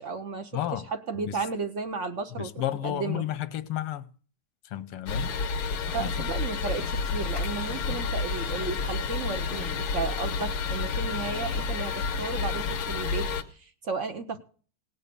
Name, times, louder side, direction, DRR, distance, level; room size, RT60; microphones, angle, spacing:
voice 1, 0.0-0.5 0.9-2.5 2.8-3.2 5.9-14.4, right 4 dB, 55° right, 0.8 m, -34 dB
voice 2, 0.5-0.9 1.1-1.5 2.3-4.1 4.6-5.3 6.0-6.1, left 12 dB, 90° left, 1.8 m, -32 dB
sound 1, 5.1-13.4, left 4 dB, 75° left, 2.0 m, -30 dB
18.0 x 7.6 x 6.9 m
omnidirectional pair, 2.4 m